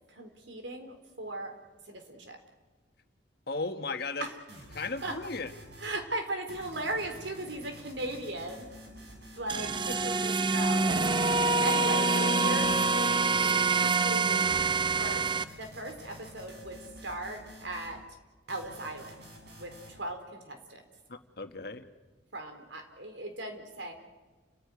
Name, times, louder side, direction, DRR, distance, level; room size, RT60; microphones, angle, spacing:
voice 1, 0.1-1.6 1.9-2.4 4.2-4.4 5.0-5.2 5.8-8.7 9.3-18.0 18.5-19.1 19.6-20.8 22.3-23.9, right 2 dB, 80° right, 5 dB, 4.1 m, -38 dB
voice 2, 3.5-4.3 4.7-5.5 9.9-10.1 21.1-21.9, left 3 dB, 60° left, 7 dB, 1.7 m, -36 dB
sound 1, 4.5-6.0 6.5-10.0 10.5-12.0 12.5-14.0 14.5-18.0 18.5-20.0, equal, 60° right, 7.2 m, -50 dB
sound 2, 9.5-15.4, right 3 dB, 25° right, 0.7 m, -26 dB
29.5 x 15.5 x 9.9 m, 1.3 s
head